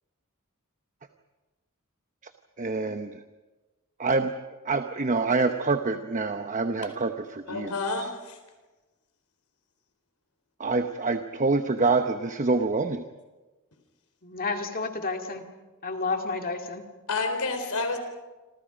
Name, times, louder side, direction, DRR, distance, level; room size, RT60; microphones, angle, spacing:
voice 1, 2.6-3.2 4.0-4.4 4.6-7.7 10.6-13.0, right 3 dB, 35° right, 7 dB, 0.9 m, -26 dB
voice 2, 7.5-8.4 17.1-18.0, left 3 dB, 80° left, 6 dB, 4.2 m, -29 dB
voice 3, 14.2-15.4 15.8-16.8, left 3 dB, 40° left, 4 dB, 2.3 m, -30 dB
27.5 x 27.0 x 5.1 m, 1.2 s
head